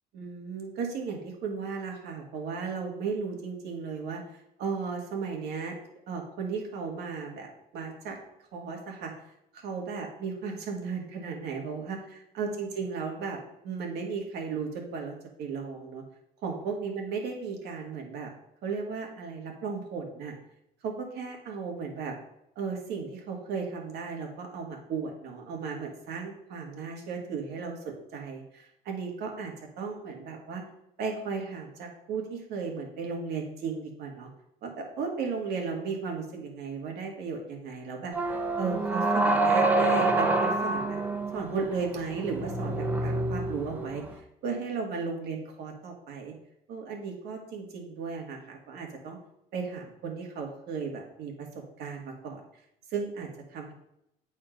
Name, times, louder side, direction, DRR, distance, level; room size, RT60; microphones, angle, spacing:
voice 1, 0.1-5.8 6.1-8.2 8.5-9.1 9.5-13.4 13.6-16.0 16.4-18.3 18.6-20.3 20.8-22.2 22.6-30.6 31.0-34.3 34.6-41.0 41.3-46.3 46.7-49.2 49.5-51.5 51.8-52.4 52.9-53.7, right 5 dB, 75° right, 1 dB, 2.0 m, -35 dB
sound 1, 38.1-44.1, right 2 dB, 10° right, 1.0 m, -27 dB
8.6 x 4.3 x 5.2 m, 0.80 s
cardioid pair, 110°, 17 cm